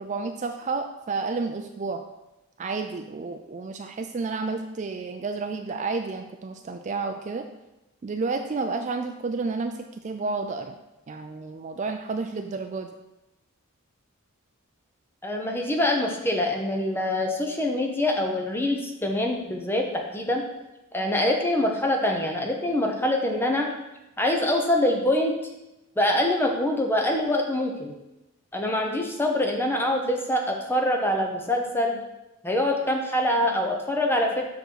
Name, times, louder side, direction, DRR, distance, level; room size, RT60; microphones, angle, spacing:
voice 1, 0.0-2.0 2.6-7.4 8.0-10.7 11.1-12.9, right 4 dB, 35° right, 6 dB, 0.3 m, -31 dB
voice 2, 15.2-19.9 20.1-20.4 20.9-23.7 24.2-25.3 26.0-27.9 28.5-32.0 32.4-34.4, left 1 dB, 10° left, 1 dB, 0.8 m, -24 dB
6.1 x 5.2 x 4.6 m, 0.97 s
head